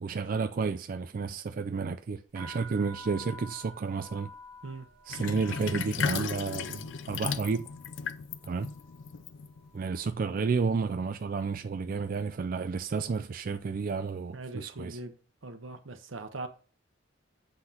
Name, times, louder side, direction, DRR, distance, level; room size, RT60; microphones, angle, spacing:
voice 1, 0.0-4.3 5.1-7.7 8.5-8.7 9.7-15.0, right 5 dB, 45° right, 0.3 m, -31 dB
sound 1, 2.3-10.2 10.5-11.1 11.8-12.1 12.3-13.8, equal, 60° right, 2.0 m, -51 dB
Sink (filling or washing), 5.1-9.8, left 6 dB, 70° left, 0.5 m, -35 dB
voice 2, 14.3-15.2 15.4-16.5, right 2 dB, 85° right, 0.9 m, -41 dB
7.9 x 5.7 x 2.8 m
head